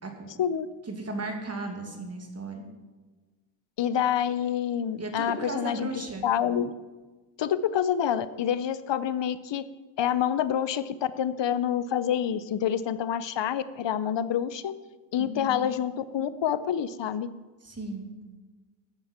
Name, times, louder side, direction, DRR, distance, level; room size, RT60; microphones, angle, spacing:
voice 1, 0.9-2.6 5.0-6.3 15.2-15.5 17.6-18.1, right 2 dB, 35° right, 2 dB, 2.2 m, -35 dB
voice 2, 3.8-6.7 7.4-9.6 10.0-14.7 15.1-17.3, left 9 dB, 75° left, 15 dB, 0.6 m, -27 dB
15.0 x 9.4 x 4.4 m, 1.2 s
wide cardioid pair, 120°, 44 cm